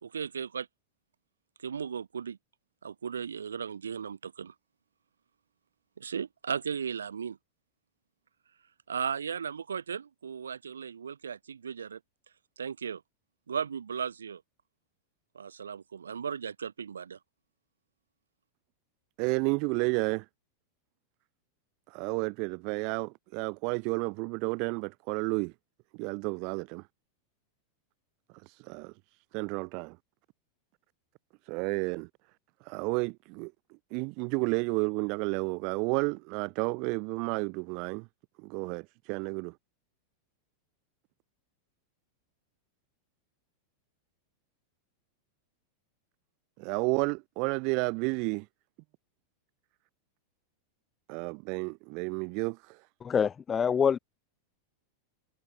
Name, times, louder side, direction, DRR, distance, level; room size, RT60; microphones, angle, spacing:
voice 1, 0.0-0.7 1.6-2.4 2.8-4.5 6.0-7.4 8.9-12.0 12.6-13.0 13.5-14.4 15.3-17.2, right 7 dB, 70° right, 4.8 m, -36 dB
voice 2, 19.2-20.2 21.9-25.5 25.9-26.8 28.5-28.9 29.3-30.0 31.4-32.1 32.6-33.5 33.9-38.1 38.4-39.5 46.6-48.5 51.1-52.8, right 33 dB, 45° right, 1.1 m, -31 dB
voice 3, 53.0-54.0, left 7 dB, 20° left, 3.6 m, -25 dB
figure-of-eight pair, 90°, 0 cm